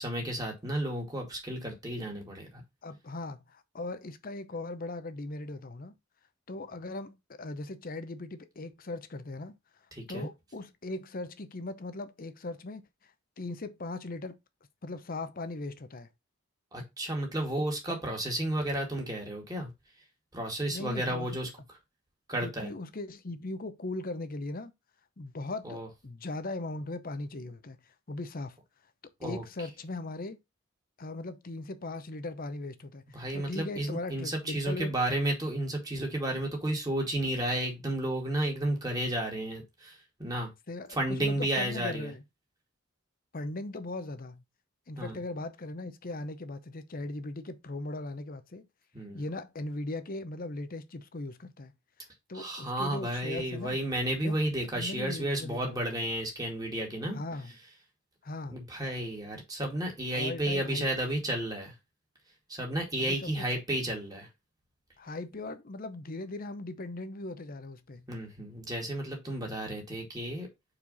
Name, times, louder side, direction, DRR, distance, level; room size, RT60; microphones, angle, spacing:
voice 1, 0.0-2.6 9.9-10.3 16.7-19.7 20.3-21.5 22.3-22.7 25.6-25.9 29.2-29.4 33.1-40.5 41.0-42.1 45.0-45.2 48.9-49.2 52.3-57.2 58.5-61.7 62.5-64.3 68.1-70.5, right 1 dB, 20° right, 2.3 m, -32 dB
voice 2, 2.8-5.9 6.5-9.6 10.1-13.1 13.4-14.4 14.8-16.1 20.7-21.3 22.4-24.7 25.2-28.6 29.2-30.4 31.0-35.0 40.7-42.2 43.3-44.4 44.9-48.7 49.1-51.7 52.3-53.8 54.2-54.4 54.8-55.9 57.1-57.5 58.2-58.6 60.1-61.1 63.0-63.5 65.0-68.1, left 2 dB, 45° left, 0.8 m, -39 dB
4.9 x 4.4 x 5.3 m
head